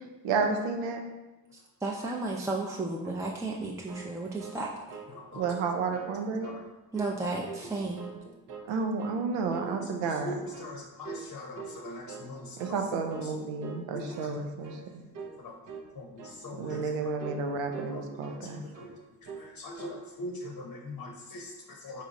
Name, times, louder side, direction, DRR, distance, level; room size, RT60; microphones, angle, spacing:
voice 1, 0.2-1.0 5.4-6.5 8.7-10.3 12.6-15.0 16.6-18.6, right 4 dB, 90° right, 5 dB, 0.6 m, -31 dB
voice 2, 1.5-5.0 6.9-8.1, right 2 dB, 5° right, -2 dB, 0.5 m, -33 dB
sound 1, 3.6-5.2 5.4-5.7 5.9-6.6 6.9-7.7 8.0-8.7 9.0-9.2 9.5-10.3 10.5-10.8 11.0-11.3 11.6-12.3 12.6-12.8 13.1-13.3 13.6-13.9 14.1-14.4 14.6-14.9 15.1-15.4 15.6-15.9 16.2-16.4 16.7-16.9 17.2-17.4 17.7-18.5 18.7-19.0 19.2-19.5 19.8-20.0, right 5 dB, 45° right, 0.6 m, -44 dB
voice 3, 5.1-5.4 6.4-6.6 7.8-7.9 8.2-8.3 9.6-12.8 13.2-13.3 13.9-14.5 15.4-15.6 15.9-17.1 17.9-22.0, left 1 dB, 45° left, 0 dB, 0.8 m, -42 dB
4.4 x 2.4 x 4.0 m, 1.1 s
supercardioid pair, 50°, 45 cm